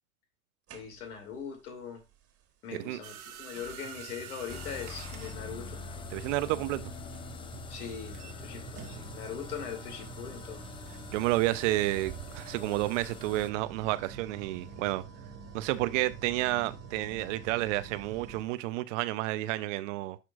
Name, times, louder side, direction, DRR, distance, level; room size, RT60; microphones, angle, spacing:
voice 1, 0.7-2.0 2.6-5.8 7.7-10.6, left 7 dB, 70° left, 2.8 m, -41 dB
sound 1, 0.7-1.3 2.7-2.8 3.5-18.6, right 6 dB, 30° right, 1.9 m, -47 dB
sound 2, 3.0-8.5 8.8-9.1, right 10 dB, 70° right, 1.5 m, -48 dB
sound 3, 4.5-13.5, left 6 dB, 10° left, 0.4 m, -45 dB
voice 2, 6.1-6.9 11.1-15.0 15.5-20.2, right 17 dB, 55° right, 0.8 m, -30 dB
11.5 x 4.5 x 2.5 m
hypercardioid pair, 100°, 45 cm